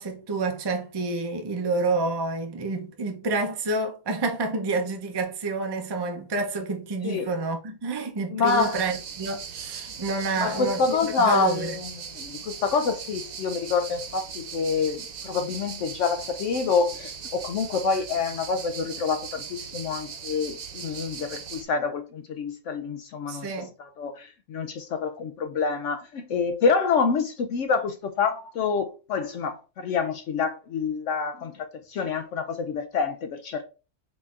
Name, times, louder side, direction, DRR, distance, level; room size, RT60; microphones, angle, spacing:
voice 1, 0.0-11.7 23.3-23.7, right 3 dB, 40° right, 0.3 m, -28 dB
voice 2, 8.3-8.8 10.3-11.9 12.2-23.5 23.8-33.6, left 5 dB, 70° left, 0.8 m, -27 dB
sound 1, 8.4-21.6, right 7 dB, 70° right, 1.1 m, -39 dB
4.0 x 3.9 x 2.4 m
omnidirectional pair, 1.5 m